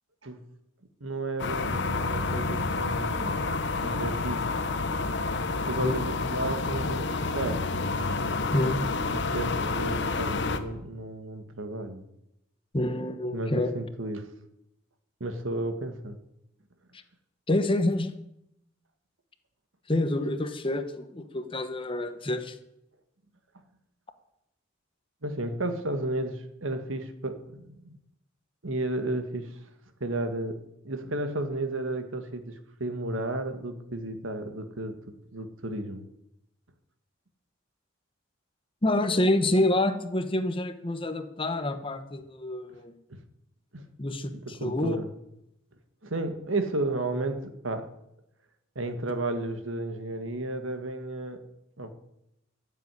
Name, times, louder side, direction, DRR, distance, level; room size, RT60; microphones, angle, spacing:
voice 1, 1.0-4.4 5.7-6.0 6.3-7.6 9.1-12.0 13.3-14.3 15.2-16.2 25.2-28.0 28.6-29.5 30.0-30.6 30.8-32.5 32.8-35.0 35.3-36.0 43.1-43.2 43.7-43.8 44.4-45.1 46.0-47.9 48.7-51.4 51.8-51.9, right 2 dB, 80° right, 8 dB, 1.7 m, -33 dB
sound 1, 1.4-10.6, left 3 dB, 60° left, 1.1 m, -29 dB
voice 2, 8.5-8.9 12.7-13.7 17.5-18.2 19.9-22.6 38.8-42.9 44.0-45.0, left 1 dB, 25° left, 9 dB, 1.1 m, -27 dB
14.0 x 7.5 x 9.7 m, 0.84 s
head